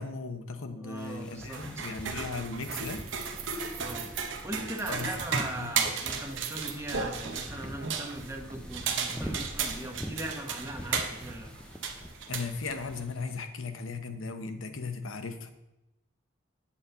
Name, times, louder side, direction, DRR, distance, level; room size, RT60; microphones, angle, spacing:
voice 1, 0.0-3.1 4.9-5.1 5.6-5.7 12.3-15.5, left 4 dB, 75° left, 8 dB, 0.8 m, -37 dB
voice 2, 0.8-1.9 3.7-4.1 4.4-11.5, right 1 dB, 10° right, 2 dB, 0.9 m, -40 dB
sound 1, 1.0-13.4, equal, 5° left, 0.5 m, -45 dB
sound 2, 1.4-13.0, right 5 dB, 60° right, 0.8 m, -35 dB
sound 3, 2.6-5.4 6.3-6.8, right 10 dB, 85° right, 0.9 m, -43 dB
8.4 x 4.2 x 6.7 m, 0.93 s
head